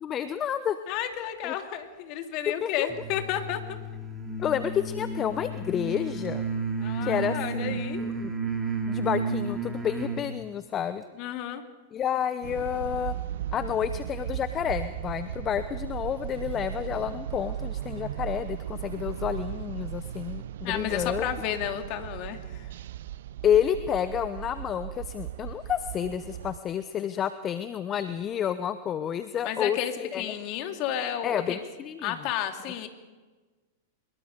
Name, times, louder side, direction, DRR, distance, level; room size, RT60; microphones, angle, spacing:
voice 1, 0.0-0.8 1.4-1.5 2.6-2.9 4.4-6.5 7.0-8.3 8.9-11.0 11.9-13.1 13.5-21.3 23.4-30.3 31.2-32.2, left 9 dB, 30° left, 12 dB, 0.9 m, -30 dB
voice 2, 0.9-3.6 6.8-8.0 11.2-11.6 20.6-22.7 29.4-31.6 32.0-32.9, left 10 dB, 45° left, 6 dB, 2.5 m, -32 dB
sound 1, 2.9-10.3, right 3 dB, 10° right, 3.2 m, -32 dB
sound 2, 12.4-26.6, right 11 dB, 65° right, 0.6 m, -37 dB
24.0 x 22.0 x 5.3 m, 1.3 s
figure-of-eight pair, 95°, 0 cm